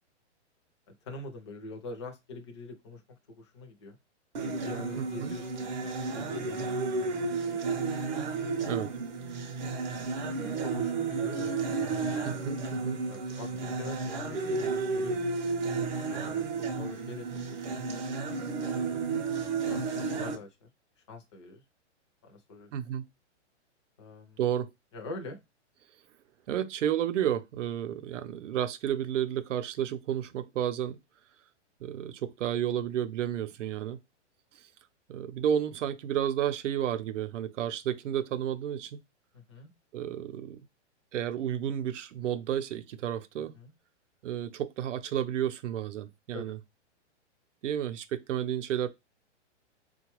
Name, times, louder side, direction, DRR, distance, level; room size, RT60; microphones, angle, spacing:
voice 1, 0.9-3.0 3.4-4.0 4.6-7.8 10.4-12.4 13.1-15.2 16.1-16.4 16.8-17.8 18.7-19.3 19.7-20.7 21.1-21.6 22.2-22.7 24.0-24.4 24.9-25.4 39.3-39.7 43.4-43.7 46.3-46.5, left 2 dB, 25° left, 0.4 m, -44 dB
sound 1, 4.3-20.4, right 4 dB, 40° right, 0.6 m, -32 dB
voice 2, 5.0-5.4 8.7-8.9 12.2-13.0 22.7-23.0 24.4-24.7 26.5-31.0 31.8-34.0 35.1-39.0 39.9-40.6 41.1-43.5 44.2-46.6 47.6-48.9, right 10 dB, 90° right, 0.6 m, -31 dB
3.8 x 2.2 x 2.9 m
hypercardioid pair, 170°, 36 cm